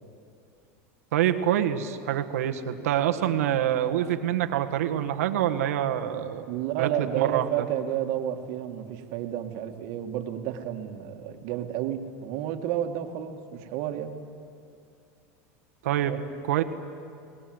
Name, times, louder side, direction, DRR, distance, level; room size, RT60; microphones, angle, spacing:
voice 1, 1.1-6.5 6.8-7.7 15.8-16.6, right 11 dB, 85° right, 6 dB, 1.6 m, -26 dB
voice 2, 6.5-14.1 16.0-16.2, right 11 dB, 60° right, 5 dB, 2.1 m, -31 dB
30.0 x 19.5 x 8.0 m, 2.5 s
supercardioid pair, 115°, 8 cm